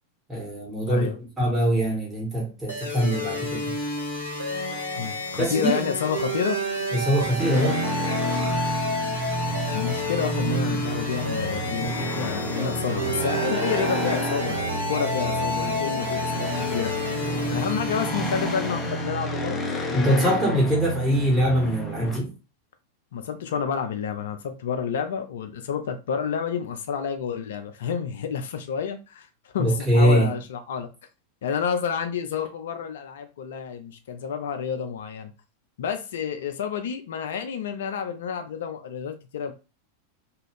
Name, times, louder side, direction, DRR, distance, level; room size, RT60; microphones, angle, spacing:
voice 1, 0.3-3.7 5.4-5.8 6.9-7.8 19.9-22.3 29.6-30.3, right 1 dB, 10° right, 1.5 m, -23 dB
sound 1, 2.7-19.1, left 1 dB, 85° right, 0.9 m, -30 dB
voice 2, 5.0-6.6 9.5-17.2 17.5-19.6 23.1-30.9 31.4-35.3 35.8-39.5, left 7 dB, 60° left, 0.4 m, -29 dB
sound 2, 7.4-22.2, equal, 15° left, 0.6 m, -30 dB
2.6 x 2.3 x 3.2 m
figure-of-eight pair, 90°, 0 cm